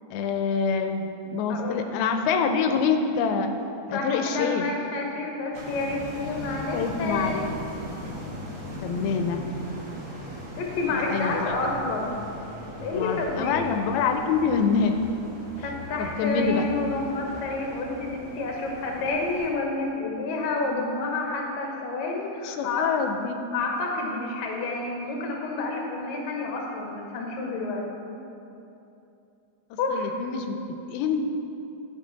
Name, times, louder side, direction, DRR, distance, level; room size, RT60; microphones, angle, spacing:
voice 1, 0.1-3.5 3.9-4.7 6.7-7.5 8.8-9.4 10.9-11.5 12.9-15.0 16.0-16.6 22.4-23.4 29.9-31.3, left 5 dB, 85° left, 6 dB, 2.4 m, -26 dB
voice 2, 1.5-1.8 3.9-7.5 10.6-12.1 12.8-13.8 15.6-22.9 23.5-27.9 29.8-30.1, left 3 dB, 65° left, 0 dB, 1.9 m, -29 dB
sound 1, 5.5-19.5, equal, 45° right, 1.8 m, -39 dB
12.0 x 5.5 x 3.9 m, 2.8 s
omnidirectional pair, 4.4 m